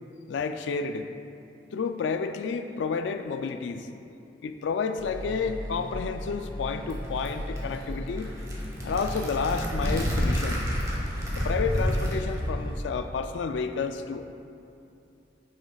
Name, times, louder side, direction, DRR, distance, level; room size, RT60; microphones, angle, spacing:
voice 1, 0.3-1.1 1.7-3.9 4.4-8.3 8.8-10.7 11.3-14.2, left 5 dB, 70° left, 8 dB, 0.3 m, -30 dB
sound 1, 5.0-12.8, equal, 25° left, 0.7 m, -37 dB
sound 2, 6.5-12.5, equal, 20° right, 1.2 m, -30 dB
10.0 x 6.5 x 2.3 m, 2.6 s
head